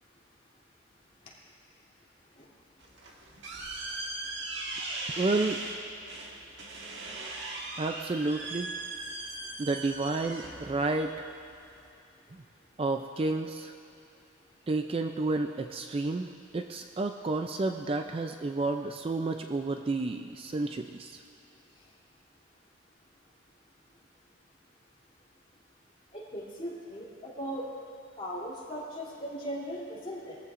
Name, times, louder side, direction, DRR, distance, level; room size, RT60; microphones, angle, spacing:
sound 1, 2.8-11.9, right 2 dB, 60° right, 1.7 m, -39 dB
voice 1, 5.2-5.6 7.8-8.7 9.6-11.3 12.8-13.7 14.7-21.2, right 3 dB, 30° right, 6 dB, 0.4 m, -31 dB
voice 2, 26.1-27.6 28.2-30.4, equal, 30° left, -7 dB, 3.1 m, -38 dB
21.0 x 14.5 x 2.5 m, 2.6 s
head